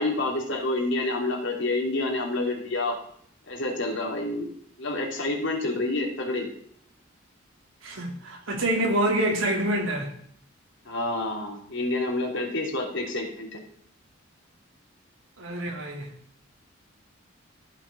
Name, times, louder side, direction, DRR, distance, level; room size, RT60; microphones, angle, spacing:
voice 1, 0.0-3.0 3.5-4.5 4.8-6.5 10.8-13.6, left 2 dB, 65° left, 0 dB, 2.9 m, -28 dB
voice 2, 7.8-10.1 15.4-16.1, right 1 dB, 80° right, 0 dB, 2.3 m, -26 dB
14.5 x 6.0 x 4.1 m, 0.65 s
head